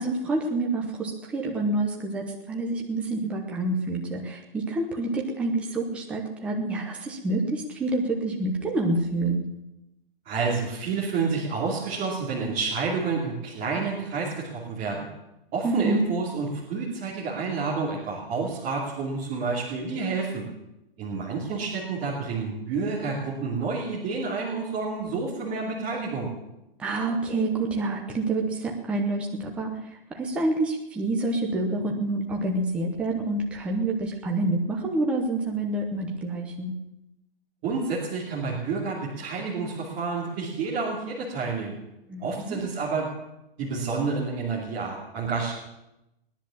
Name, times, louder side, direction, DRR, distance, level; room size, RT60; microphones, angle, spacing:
voice 1, 0.0-9.4 15.6-16.0 26.8-29.7 30.1-36.7 42.1-42.6, right 2 dB, 5° right, 0 dB, 0.8 m, -27 dB
voice 2, 10.2-15.1 15.5-20.4 21.0-26.3 37.6-41.8 42.2-43.1 43.6-45.5, right 4 dB, 20° right, -6 dB, 2.7 m, -29 dB
19.5 x 10.5 x 7.1 m, 0.91 s
hypercardioid pair, 175°, 29 cm